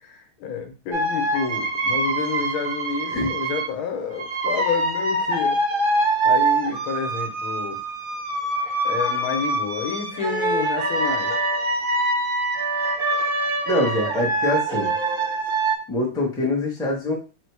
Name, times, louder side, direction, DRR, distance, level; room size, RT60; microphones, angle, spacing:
voice 1, 0.0-5.6 6.2-7.8 8.8-11.3, left 5 dB, 85° left, 6 dB, 1.7 m, -29 dB
sound 1, 0.9-3.7 4.1-15.8, right 2 dB, 80° right, 0.4 m, -24 dB
voice 2, 13.7-14.9 15.9-17.1, left 1 dB, 5° left, -2 dB, 0.6 m, -24 dB
4.1 x 2.6 x 4.6 m, 0.33 s
omnidirectional pair, 2.2 m